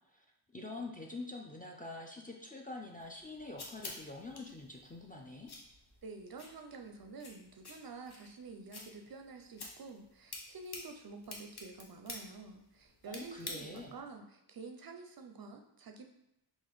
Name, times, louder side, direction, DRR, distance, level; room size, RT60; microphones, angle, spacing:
voice 1, 0.5-5.5 13.1-13.9, left 2 dB, 20° left, 0 dB, 0.4 m, -45 dB
sound 1, 3.0-14.0, left 3 dB, 55° left, 0.8 m, -50 dB
voice 2, 6.0-16.1, right 4 dB, 50° right, 5 dB, 0.5 m, -49 dB
3.9 x 2.6 x 3.1 m, 0.81 s
wide cardioid pair, 90°, 47 cm